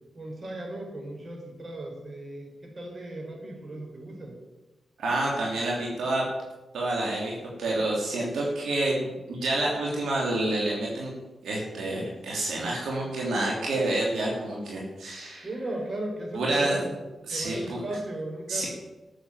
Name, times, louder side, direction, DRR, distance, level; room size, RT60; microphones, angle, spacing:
voice 1, 0.1-4.4 15.4-17.0 17.3-18.7, right 1 dB, 45° right, 0 dB, 4.9 m, -36 dB
voice 2, 5.0-6.2 6.7-11.1 11.4-15.5 16.3-16.8 17.3-17.8 18.5-18.7, right 2 dB, 85° right, -3 dB, 3.0 m, -28 dB
13.0 x 7.1 x 7.8 m, 1.1 s
cardioid pair, 65°, 0 cm